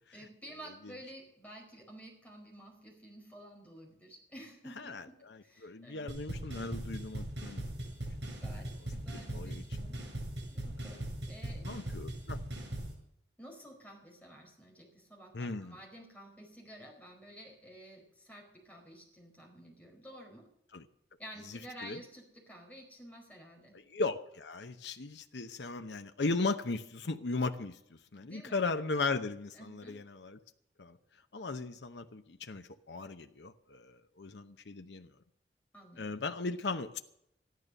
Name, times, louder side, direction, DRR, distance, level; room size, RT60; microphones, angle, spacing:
voice 1, 0.1-6.1 8.4-10.0 10.5-11.6 13.4-20.5 21.2-23.8 28.2-28.6 29.5-30.0 35.7-36.1, equal, 10° left, 4.7 m, -51 dB
voice 2, 4.8-7.7 9.1-9.6 11.6-12.4 15.3-15.8 20.7-20.8 21.5-22.0 23.7-30.4 30.8-31.0 31.3-35.1 36.0-37.0, left 3 dB, 75° left, 0.8 m, -37 dB
sound 1, 6.1-12.9, right 1 dB, 80° right, 7.4 m, -40 dB
14.0 x 11.5 x 6.6 m
head